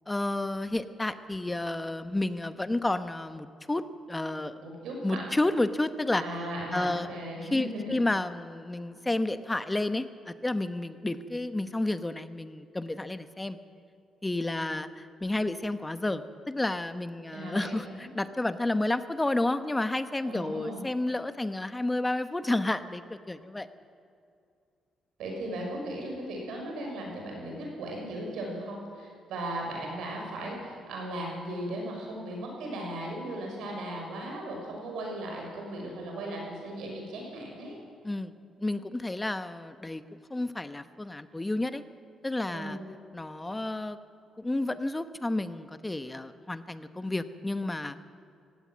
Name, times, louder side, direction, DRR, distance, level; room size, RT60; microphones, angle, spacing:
voice 1, 0.1-4.6 5.0-6.2 6.7-7.1 7.5-13.6 14.2-23.7 38.0-38.3 38.6-40.0 40.3-41.8 42.2-42.8 43.1-44.0 44.4-47.9, left 2 dB, 15° left, 11 dB, 1.0 m, -31 dB
voice 2, 4.6-5.3 6.2-8.0 17.3-18.1 20.2-20.8 25.2-37.8 42.5-42.9, right 1 dB, 80° right, 0 dB, 6.3 m, -37 dB
16.5 x 16.5 x 9.5 m, 2.4 s
cardioid pair, 90°, 0 cm